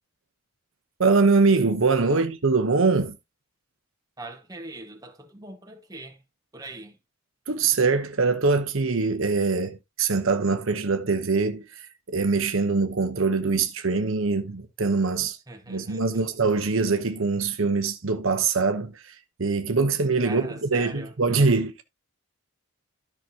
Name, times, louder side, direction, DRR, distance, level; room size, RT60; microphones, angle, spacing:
voice 1, 1.0-3.2 7.5-15.4 15.7-21.8, right 4 dB, 65° right, 0.9 m, -23 dB
voice 2, 4.2-6.2 6.5-7.0 15.5-16.2 20.2-21.1, right 2 dB, 15° right, 1.6 m, -41 dB
13.0 x 6.0 x 2.8 m
head